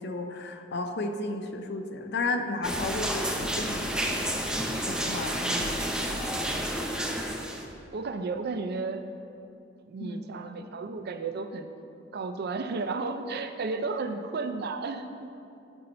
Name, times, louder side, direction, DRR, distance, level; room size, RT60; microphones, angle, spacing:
voice 1, 0.0-4.2 4.9-6.2 10.0-10.2, left 2 dB, 60° left, 6 dB, 0.6 m, -33 dB
sound 1, 2.6-7.6, equal, 5° right, 0.6 m, -30 dB
voice 2, 5.4-5.9 7.9-9.0 9.9-11.7 12.1-15.3, right 3 dB, 55° right, 8 dB, 0.4 m, -33 dB
11.5 x 4.1 x 4.3 m, 2.7 s
head